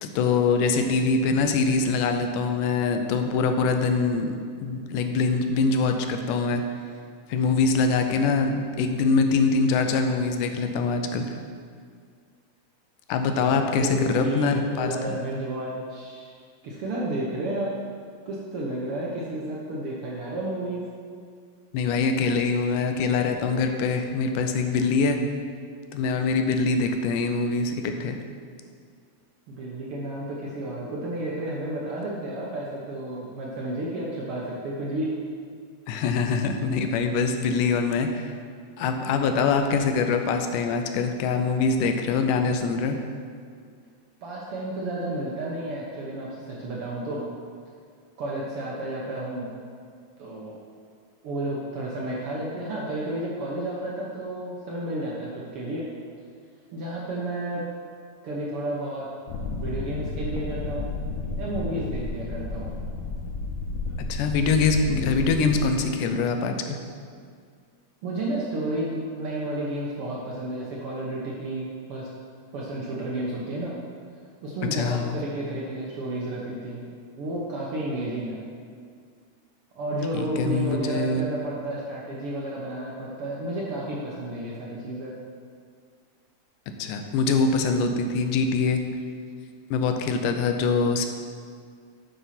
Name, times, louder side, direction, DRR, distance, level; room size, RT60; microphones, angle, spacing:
voice 1, 0.0-6.6 7.3-11.3 13.1-15.1 21.7-25.2 25.9-28.2 35.9-38.4 38.8-43.0 64.1-66.8 74.7-75.2 80.1-81.2 86.8-88.8 89.7-91.1, left 4 dB, 90° left, 6 dB, 2.2 m, -24 dB
voice 2, 13.3-16.3 16.6-17.7 18.2-20.8 29.5-35.2 44.2-47.2 48.2-49.5 50.2-50.6 51.2-55.9 56.7-57.7 58.2-59.1 59.6-60.9 61.4-62.8 68.0-72.1 72.5-73.8 74.4-76.9 77.2-78.4 79.7-85.1, right 1 dB, 65° right, -4 dB, 1.4 m, -31 dB
sound 1, 59.3-65.6, left 3 dB, 70° left, 2.0 m, -32 dB
8.3 x 5.5 x 5.7 m, 2.1 s
omnidirectional pair, 3.6 m